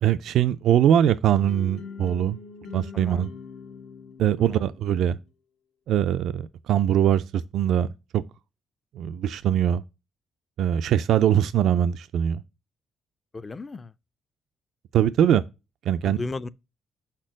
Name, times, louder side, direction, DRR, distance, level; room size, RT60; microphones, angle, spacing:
voice 1, 0.0-2.4 2.7-3.3 4.2-5.2 5.9-7.9 8.1-8.2 9.0-9.8 10.6-12.4 14.9-15.4 15.9-16.2, right 10 dB, 75° right, 0.3 m, -22 dB
sound 1, 1.3-5.3, left 5 dB, 85° left, 1.1 m, -43 dB
voice 2, 2.9-3.3 4.5-4.6 13.3-13.9 16.0-16.5, left 3 dB, 30° left, 0.4 m, -35 dB
5.6 x 4.4 x 6.1 m
cardioid pair, 90°, 0 cm